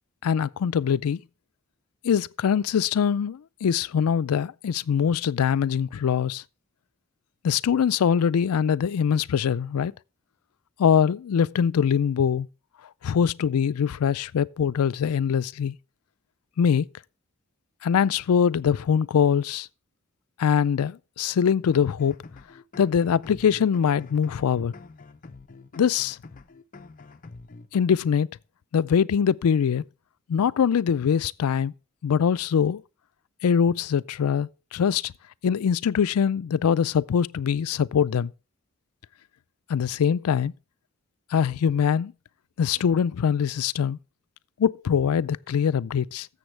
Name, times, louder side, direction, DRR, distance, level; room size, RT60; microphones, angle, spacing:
voice 1, 0.2-1.2 2.0-6.4 7.4-9.9 10.8-12.5 13.0-15.7 16.6-16.9 17.8-19.7 20.4-22.2 22.8-24.7 25.8-26.2 27.7-28.3 28.7-29.8 30.3-31.7 32.0-32.8 33.4-35.1 35.4-38.3 39.7-40.5 41.3-42.1 42.6-44.0 44.6-46.3, left 7 dB, 85° left, 0.4 m, -23 dB
sound 1, 21.6-27.8, left 3 dB, 40° left, 0.6 m, -47 dB
14.5 x 6.9 x 3.2 m
head